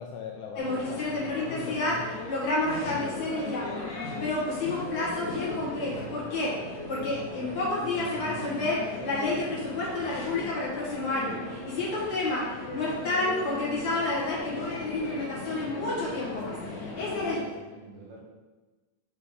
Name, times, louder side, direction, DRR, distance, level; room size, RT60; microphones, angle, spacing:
voice 1, 0.0-2.1, left 7 dB, 85° left, 2 dB, 1.7 m, -40 dB
sound 1, 0.6-17.4, left 2 dB, 55° left, 1.1 m, -30 dB
voice 2, 2.6-3.8 4.2-14.0 14.3-18.2, right 2 dB, 80° right, -3 dB, 3.2 m, -45 dB
6.4 x 5.6 x 3.7 m, 1.3 s
omnidirectional pair, 4.0 m